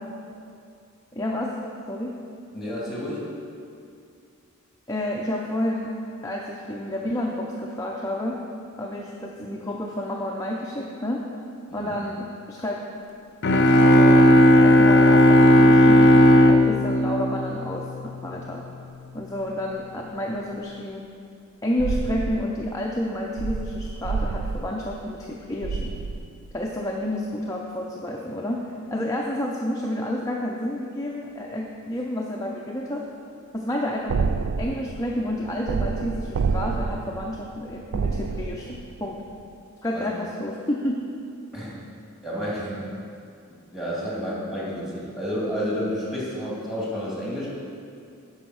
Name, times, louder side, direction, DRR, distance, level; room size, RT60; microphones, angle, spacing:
voice 1, 1.1-1.6 1.9-2.2 4.9-5.9 6.2-8.4 8.8-11.2 11.7-12.8 13.7-16.1 16.5-18.6 19.1-21.0 21.6-26.0 26.5-28.6 28.9-33.0 33.5-34.3 34.6-39.2 39.8-41.1, left 1 dB, 15° left, -2 dB, 0.6 m, -30 dB
voice 2, 2.5-3.3 11.7-12.0 39.9-40.1 41.5-41.8 42.2-42.9 43.5-47.5, equal, ahead, -6 dB, 2.5 m, -30 dB
sound 1, 13.4-18.1, equal, 55° left, 0.6 m, -15 dB
sound 2, 21.8-26.8 34.1-39.0 39.3-39.4, right 4 dB, 80° right, 0.4 m, -29 dB
9.3 x 5.6 x 6.2 m, 2.4 s
head